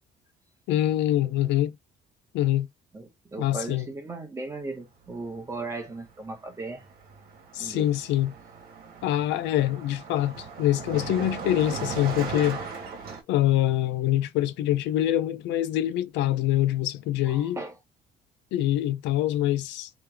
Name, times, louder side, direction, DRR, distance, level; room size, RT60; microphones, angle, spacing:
voice 1, 0.7-1.7 2.3-2.7 3.4-3.9 7.5-8.3 9.0-12.7 13.3-17.6 18.5-19.9, left 13 dB, 80° left, 0.5 m, -25 dB
voice 2, 2.9-6.8 7.6-7.9 17.3-17.8, right 3 dB, 15° right, 1.1 m, -37 dB
Car passing by, 5.7-6.0 6.2-13.2, right 5 dB, 55° right, 1.4 m, -38 dB
3.3 x 3.1 x 3.4 m
cardioid pair, 155°, 18 cm